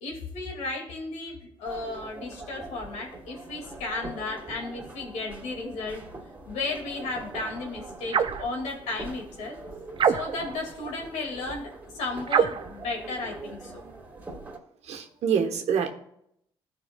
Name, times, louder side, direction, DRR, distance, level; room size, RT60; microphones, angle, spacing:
voice 1, 0.0-6.0 6.5-9.6 10.0-13.7, left 3 dB, 75° left, 0 dB, 2.2 m, -34 dB
sound 1, 1.6-14.6, right 2 dB, 15° right, 2.6 m, -43 dB
sound 2, 8.1-8.5 10.0-10.5 12.3-12.7, right 7 dB, 45° right, 0.5 m, -24 dB
voice 2, 14.8-15.9, right 7 dB, 65° right, 4 dB, 1.2 m, -26 dB
15.0 x 5.2 x 2.3 m, 0.74 s
hypercardioid pair, 55°, 12 cm